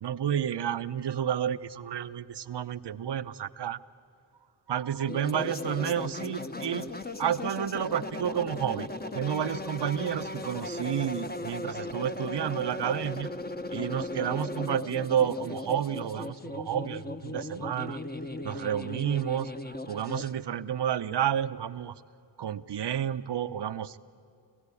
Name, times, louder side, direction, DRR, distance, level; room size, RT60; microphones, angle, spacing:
voice 1, 0.0-3.8 4.7-6.9 7.2-8.9 9.1-13.3 13.7-18.0 18.4-19.5 19.9-22.0 22.4-24.0, right 9 dB, 55° right, 13 dB, 0.8 m, -30 dB
sound 1, 5.1-20.3, left 2 dB, 20° left, 1.1 m, -37 dB
26.0 x 17.0 x 8.4 m, 2.5 s
cardioid pair, 40°, 49 cm